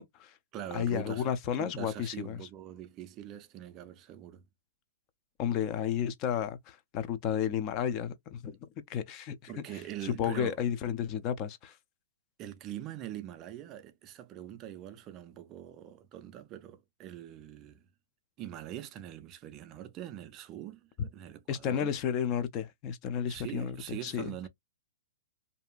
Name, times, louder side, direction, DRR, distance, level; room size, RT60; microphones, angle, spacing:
voice 1, 0.0-0.4 0.7-2.4 5.4-8.6 8.9-11.8 21.5-24.3, left 9 dB, 35° left, 0.4 m, -32 dB
voice 2, 0.5-1.3 1.6-4.4 9.5-10.6 12.4-17.8 18.4-21.9 23.3-24.5, right 11 dB, 30° right, 0.4 m, -43 dB
2.6 x 2.4 x 2.2 m
hypercardioid pair, 135°, 0 cm